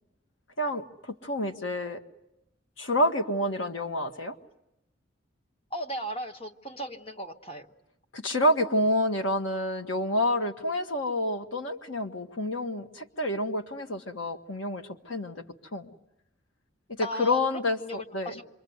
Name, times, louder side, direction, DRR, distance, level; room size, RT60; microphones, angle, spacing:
voice 1, 0.6-2.0 2.8-4.3 8.1-15.4 15.7-15.9 17.0-18.3, left 1 dB, 90° left, 5 dB, 1.7 m, -28 dB
voice 2, 5.7-7.7 17.0-17.4 17.8-18.4, equal, 30° left, 6 dB, 1.3 m, -36 dB
27.5 x 23.5 x 8.0 m, 0.87 s
head